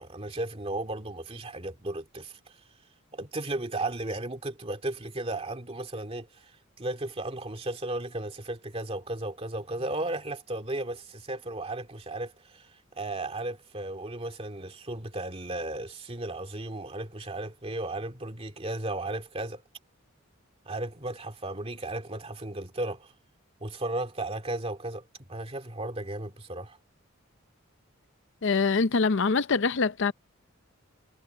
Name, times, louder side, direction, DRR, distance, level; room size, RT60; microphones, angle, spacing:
voice 1, 0.0-2.6 3.1-6.5 6.8-19.6 20.7-23.1 23.6-26.8, right 2 dB, 30° right, 2.3 m, -35 dB
voice 2, 28.4-30.1, left 4 dB, 60° left, 0.6 m, -24 dB
head